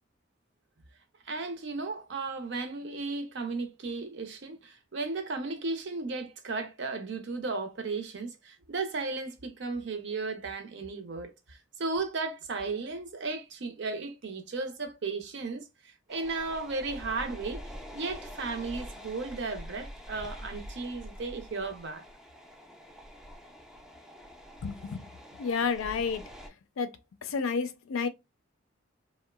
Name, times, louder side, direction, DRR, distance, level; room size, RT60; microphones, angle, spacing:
voice 1, 1.2-15.7 16.1-17.6 17.9-22.0, right 3 dB, 60° right, 0.5 m, -35 dB
sound 1, 16.1-26.5, equal, ahead, 0.3 m, -45 dB
voice 2, 24.6-25.1 25.4-26.2 26.8-27.0 27.2-28.1, left 5 dB, 85° left, 0.4 m, -30 dB
2.9 x 2.0 x 2.2 m
head